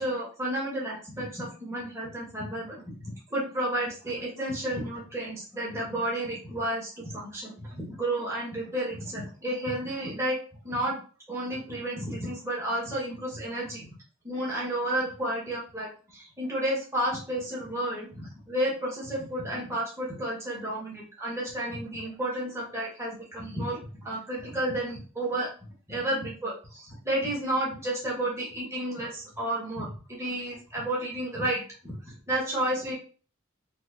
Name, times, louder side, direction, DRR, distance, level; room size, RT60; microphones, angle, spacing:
voice 1, 0.0-10.4 10.6-11.0 11.3-13.9 14.2-25.5 25.9-31.6 32.3-33.0, right 1 dB, 15° right, -5 dB, 1.3 m, -31 dB
4.1 x 2.7 x 2.5 m, 0.37 s
head